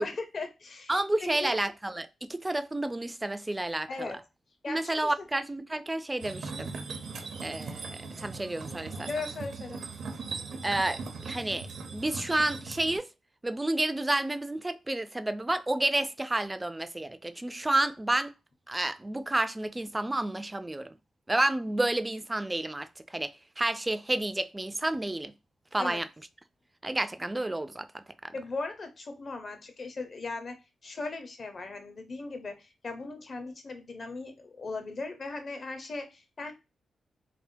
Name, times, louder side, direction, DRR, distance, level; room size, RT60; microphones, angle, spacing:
voice 1, 0.0-0.9 1.2-1.6 3.9-4.2 4.6-5.3 9.1-9.8 25.8-26.0 28.3-30.6 30.8-36.5, left 3 dB, 50° left, 0.8 m, -38 dB
voice 2, 0.9-4.1 4.7-6.7 7.4-9.1 10.6-11.6 11.9-13.1 13.4-18.3 18.7-20.9 21.3-23.3 23.6-25.3 25.7-26.1 26.8-28.3, right 2 dB, 20° right, 0.3 m, -30 dB
sound 1, 6.2-13.0, right 4 dB, 70° right, 0.6 m, -39 dB
3.4 x 2.1 x 2.5 m
cardioid pair, 65°, 0 cm